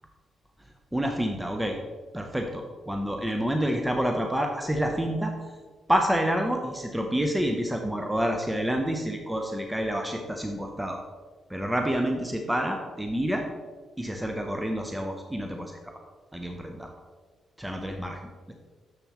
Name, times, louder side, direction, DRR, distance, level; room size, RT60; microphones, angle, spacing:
voice 1, 0.9-1.8 2.1-5.3 5.9-11.0 11.5-13.4 14.0-15.7 16.3-16.9 17.6-18.3, equal, 10° right, 3 dB, 0.7 m, -28 dB
7.1 x 7.0 x 3.0 m, 1.5 s
supercardioid pair, 60°, 0 cm